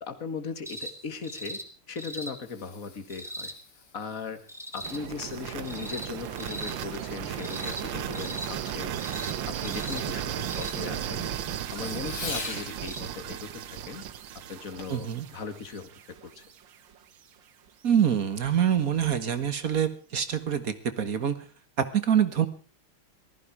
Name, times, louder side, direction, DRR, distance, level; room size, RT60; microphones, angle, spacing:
voice 1, 0.0-1.6 1.9-3.5 3.9-4.5 4.7-11.3 11.7-14.0 14.5-16.5, left 5 dB, 40° left, 8 dB, 2.1 m, -38 dB
sound 1, 0.6-0.9 1.2-1.6 2.0-2.3 3.1-3.5 4.5-5.0 5.6-6.1 6.4-6.7 7.4-7.8 8.1-8.5 9.0-9.3 9.6-10.0 10.5-10.8 12.0-12.5 12.8-13.0 14.1-14.2, equal, ahead, 2.1 m, -39 dB
Fireworks, 1.8-12.8 14.8-15.1 15.7-15.8, left 4 dB, 90° left, 3.5 m, -46 dB
sound 2, 4.8-16.7, right 10 dB, 65° right, 1.6 m, -35 dB
voice 2, 14.9-15.3 17.8-21.4 21.8-22.5, right 8 dB, 45° right, 11 dB, 1.7 m, -25 dB
19.0 x 14.5 x 4.8 m, 0.36 s
omnidirectional pair, 2.3 m